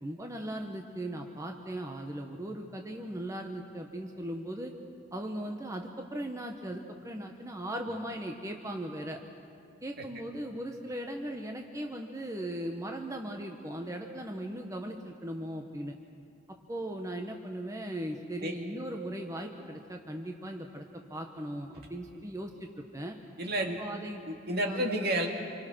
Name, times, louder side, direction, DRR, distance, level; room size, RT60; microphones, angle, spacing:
voice 1, 0.0-4.7 5.1-9.2 9.8-15.9 16.7-23.2 23.8-24.2 24.7-24.8, right 1 dB, 20° right, 3 dB, 1.2 m, -38 dB
voice 2, 23.4-23.8 24.3-25.3, right 1 dB, 60° right, 2 dB, 2.6 m, -30 dB
27.5 x 24.0 x 6.3 m, 2.4 s
head